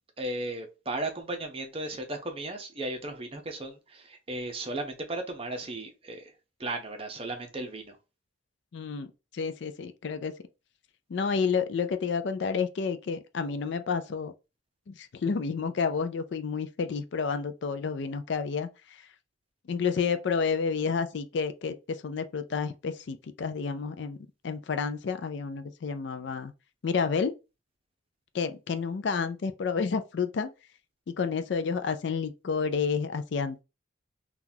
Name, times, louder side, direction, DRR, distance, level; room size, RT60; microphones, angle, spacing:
voice 1, 0.2-6.3 6.6-8.0, right 2 dB, 30° right, 0.7 m, -35 dB
voice 2, 8.7-9.1 9.3-10.3 11.1-14.3 14.9-19.0 19.7-24.2 24.4-26.5 26.8-27.3 28.3-30.5 31.1-33.6, left 5 dB, 65° left, 0.4 m, -30 dB
3.7 x 2.4 x 2.7 m
head